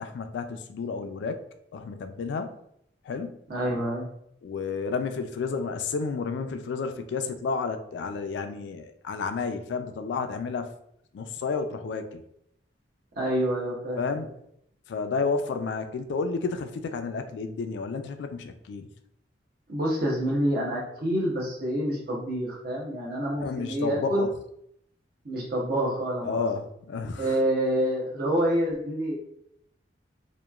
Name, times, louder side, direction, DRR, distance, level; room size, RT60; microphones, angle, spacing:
voice 1, 0.0-1.4 1.7-2.5 3.1-3.3 4.4-10.7 11.1-12.2 14.0-14.3 14.9-18.9 23.4-24.3 26.2-27.3, left 4 dB, 70° left, 8 dB, 0.3 m, -31 dB
voice 2, 3.5-4.1 13.2-14.0 19.7-24.2 25.2-26.5 27.2-29.1, equal, 55° right, -4 dB, 0.7 m, -27 dB
2.8 x 2.2 x 2.3 m, 0.74 s
head